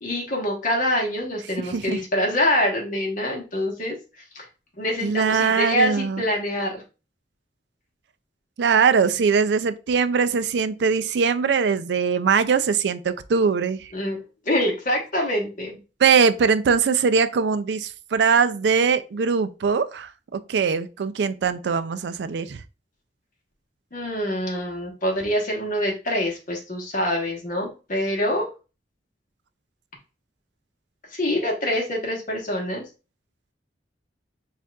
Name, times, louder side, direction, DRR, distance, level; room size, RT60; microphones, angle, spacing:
voice 1, 0.0-4.0 4.3-4.5 4.8-6.8 13.9-14.2 14.4-15.7 23.9-28.5 31.1-32.8, left 1 dB, 45° left, 1.2 m, -25 dB
voice 2, 1.6-2.0 5.0-6.2 8.6-13.9 16.0-22.6, right 5 dB, 70° right, 0.4 m, -21 dB
7.0 x 2.5 x 2.3 m
head